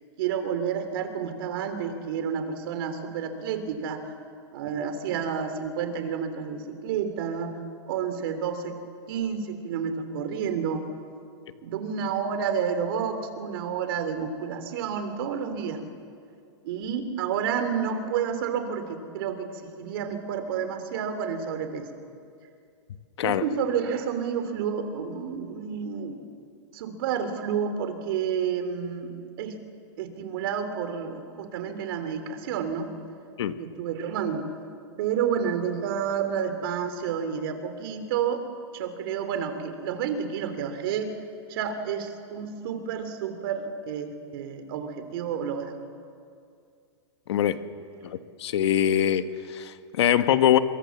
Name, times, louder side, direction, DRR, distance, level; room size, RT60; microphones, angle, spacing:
voice 1, 0.2-4.1 4.5-7.6 7.9-8.8 9.1-10.9 11.6-15.8 16.6-19.5 19.8-21.9 23.2-26.2 26.7-29.5 30.0-32.9 33.6-34.4 35.0-38.4 38.7-41.1 41.5-45.7, right 7 dB, 55° right, 8 dB, 3.3 m, -30 dB
voice 2, 47.3-47.6 48.4-50.6, left 10 dB, 70° left, 10 dB, 1.4 m, -23 dB
26.5 x 23.0 x 7.3 m, 2.3 s
supercardioid pair, 155°, 15 cm